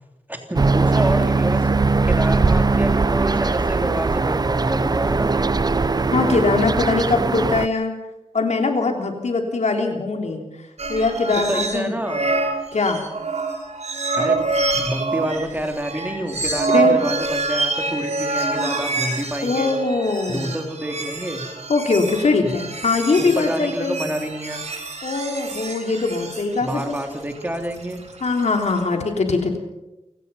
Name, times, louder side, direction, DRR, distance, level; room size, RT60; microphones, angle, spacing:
voice 1, 0.3-1.7 2.0-5.3 11.5-12.2 14.2-14.4 14.7-19.7 20.3-21.4 23.2-24.6 26.6-28.0, right 1 dB, 15° right, 4 dB, 3.2 m, -28 dB
sound 1, 0.6-7.7, right 3 dB, 35° right, 0.7 m, -20 dB
voice 2, 6.1-7.9 8.3-11.9 12.7-13.0 16.7-17.0 19.4-20.6 21.7-24.0 25.0-27.0 28.2-29.6, left 3 dB, 70° left, 3 dB, 3.5 m, -22 dB
sound 2, 10.8-11.8 12.1-28.8, right 3 dB, 65° right, 5.5 m, -26 dB
29.0 x 17.0 x 5.7 m, 0.95 s
wide cardioid pair, 100°, 12 cm